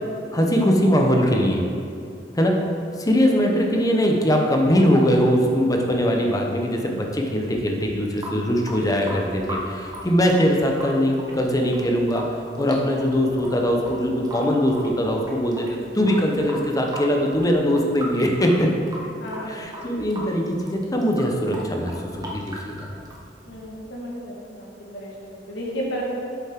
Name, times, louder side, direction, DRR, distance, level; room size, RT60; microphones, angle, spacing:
voice 1, 0.3-1.6 2.3-2.5 3.0-12.3 12.6-18.7 19.5-22.9, equal, 20° left, 1 dB, 0.9 m, -21 dB
Water tap faucet / Sink (filling or washing) / Drip, 7.9-23.9, equal, 20° right, 1.2 m, -39 dB
voice 2, 19.2-20.2 23.5-26.0, equal, 70° left, -4 dB, 1.7 m, -34 dB
8.9 x 7.1 x 3.7 m, 2.4 s
head